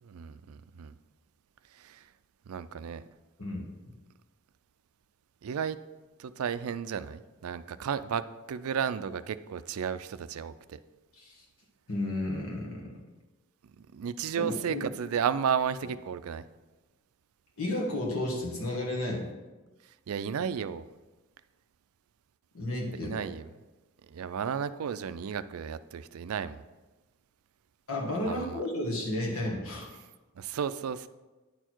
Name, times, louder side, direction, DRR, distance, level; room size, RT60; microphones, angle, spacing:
voice 1, 0.0-0.9 1.7-2.1 2.5-3.0 5.4-5.8 6.2-10.8 13.9-16.4 20.1-20.8 22.9-23.5 24.0-26.6 28.3-28.6 30.4-31.1, right 7 dB, 85° right, 14 dB, 0.4 m, -33 dB
voice 2, 11.1-11.4 11.9-12.9 14.4-14.9 17.6-19.3 22.5-23.1 27.9-29.9, left 1 dB, 80° left, -1 dB, 1.5 m, -32 dB
9.9 x 4.5 x 4.4 m, 1.2 s
head